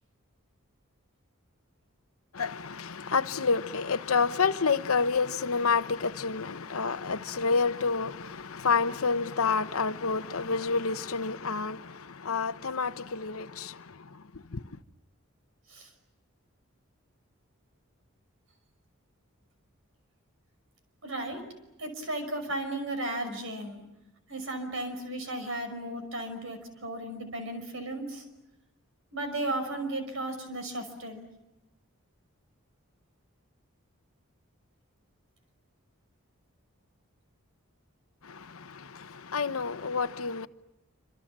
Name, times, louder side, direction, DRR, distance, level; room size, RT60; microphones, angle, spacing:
voice 1, 2.3-14.8 38.2-40.5, left 5 dB, 80° left, 1.0 m, -29 dB
voice 2, 21.0-21.4 21.8-23.8 24.3-28.2 29.1-31.3, right 1 dB, 65° right, 5.7 m, -35 dB
27.5 x 26.5 x 7.5 m
head